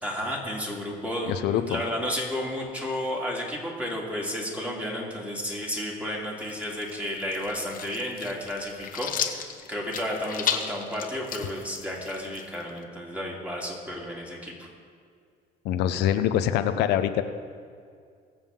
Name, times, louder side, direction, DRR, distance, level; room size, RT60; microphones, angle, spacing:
voice 1, 0.0-9.4 9.7-14.7, equal, 10° right, -3 dB, 2.8 m, -32 dB
voice 2, 1.3-1.8 15.6-17.2, left 11 dB, 85° left, 9 dB, 0.6 m, -24 dB
sound 1, 6.4-12.8, left 8 dB, 55° left, 1.0 m, -34 dB
21.5 x 7.4 x 3.7 m, 2.3 s
cardioid pair, 110°, 17 cm